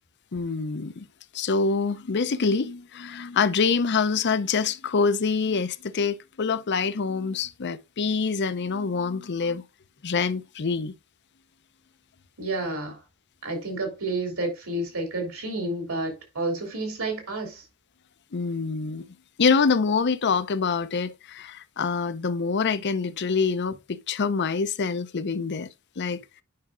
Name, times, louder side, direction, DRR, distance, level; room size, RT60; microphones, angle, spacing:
voice 1, 0.3-1.1 1.3-9.6 10.0-10.9 18.3-19.1 19.4-25.7 26.0-26.2, left 5 dB, 50° left, 0.6 m, -25 dB
voice 2, 12.4-13.0 13.4-17.6, right 2 dB, 70° right, 3.4 m, -30 dB
9.5 x 5.9 x 2.5 m
head